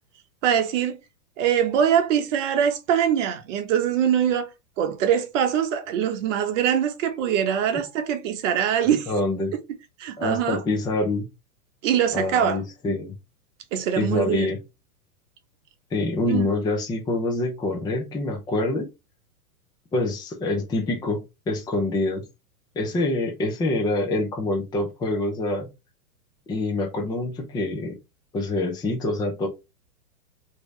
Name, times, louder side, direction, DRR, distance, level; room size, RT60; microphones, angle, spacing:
voice 1, 0.4-1.0 1.4-4.5 4.8-9.1 10.0-10.6 11.8-12.6 13.7-14.5 16.3-16.5, right 9 dB, 50° right, 0.9 m, -23 dB
voice 2, 9.1-9.5 10.2-11.3 12.1-13.1 14.0-14.6 15.9-18.9 19.9-22.2 22.8-25.7 26.5-27.9 28.3-29.5, left 2 dB, 10° left, 0.5 m, -26 dB
3.0 x 2.9 x 3.1 m
hypercardioid pair, 120°, 47 cm